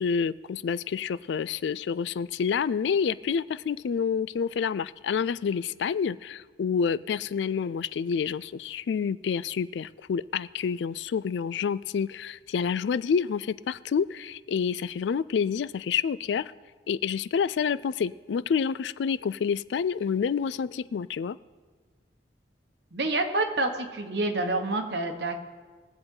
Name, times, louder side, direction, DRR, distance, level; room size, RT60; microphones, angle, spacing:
voice 1, 0.0-16.5 16.9-21.4, left 6 dB, 75° left, 18 dB, 0.3 m, -28 dB
voice 2, 22.9-25.4, right 2 dB, 65° right, 5 dB, 1.3 m, -28 dB
21.0 x 7.9 x 3.8 m, 1.4 s
head